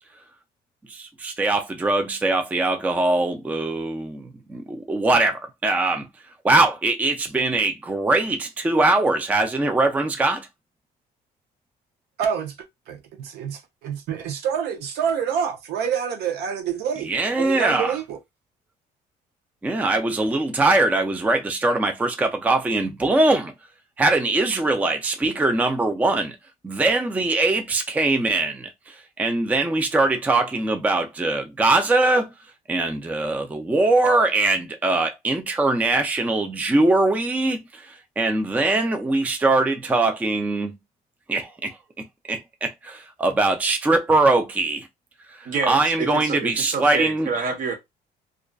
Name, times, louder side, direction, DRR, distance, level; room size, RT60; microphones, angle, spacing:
voice 1, 0.9-6.1 6.4-10.5 17.1-17.9 19.6-23.5 24.0-26.4 26.6-32.3 32.7-40.8 41.3-44.9 45.3-47.3, right 2 dB, 10° right, 0.4 m, -22 dB
voice 2, 12.2-18.2, right 7 dB, 75° right, 0.5 m, -27 dB
voice 3, 45.4-47.7, right 5 dB, 50° right, 0.9 m, -27 dB
2.4 x 2.3 x 2.2 m
cardioid pair, 110°, 17 cm